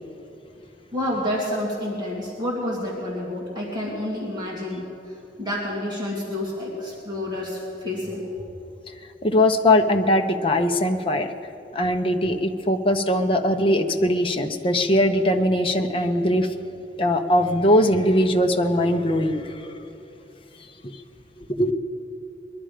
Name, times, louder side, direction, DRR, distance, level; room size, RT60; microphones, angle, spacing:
voice 1, 0.9-4.8 5.4-8.2, left 1 dB, 25° right, -5 dB, 2.3 m, -29 dB
voice 2, 9.2-11.3 11.7-16.5 17.0-19.7 21.4-21.7, left 1 dB, 30° left, 5 dB, 0.8 m, -21 dB
21.0 x 11.5 x 5.0 m, 2.8 s
head